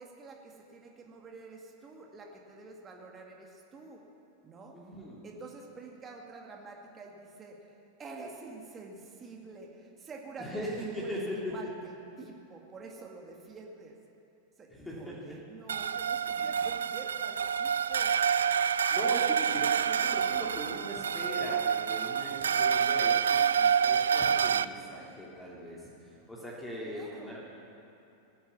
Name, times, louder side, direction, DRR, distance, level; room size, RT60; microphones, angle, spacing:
voice 1, 0.0-4.0 4.4-4.8 5.2-7.6 8.0-10.7 11.0-11.2 11.5-14.0 14.6-18.2 26.8-27.4, right 3 dB, 20° right, 0 dB, 2.1 m, -47 dB
voice 2, 4.7-5.2 10.4-11.5 14.7-15.3 16.4-16.5 18.9-27.4, equal, 10° left, -5 dB, 3.0 m, -40 dB
sound 1, 15.7-24.6, right 7 dB, 70° right, 0.3 m, -27 dB
19.5 x 10.0 x 7.3 m, 2.9 s
figure-of-eight pair, 90°, 0 cm